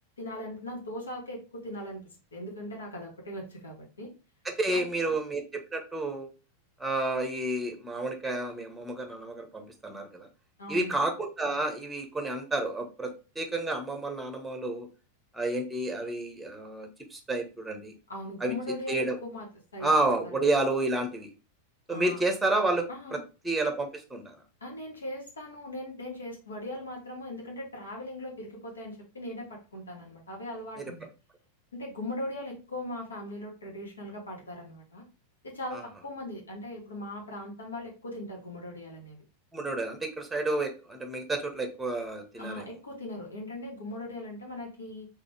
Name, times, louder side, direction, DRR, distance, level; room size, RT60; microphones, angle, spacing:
voice 1, 0.2-2.0 2.3-4.1 4.7-5.1 10.6-11.0 18.1-19.5 19.7-20.1 21.9-22.2 22.9-23.2 24.6-31.1 31.7-35.0 35.4-39.2 42.4-45.1, left 1 dB, 70° left, -1 dB, 1.6 m, -39 dB
voice 2, 4.6-5.4 5.7-6.3 6.8-10.3 10.7-14.9 15.3-17.9 18.4-18.5 18.9-19.2 19.8-21.3 21.9-23.2 23.4-24.4 35.7-35.8 39.5-42.6, right 2 dB, 5° right, 5 dB, 1.0 m, -30 dB
4.0 x 3.2 x 3.4 m, 0.32 s
figure-of-eight pair, 90°, 0 cm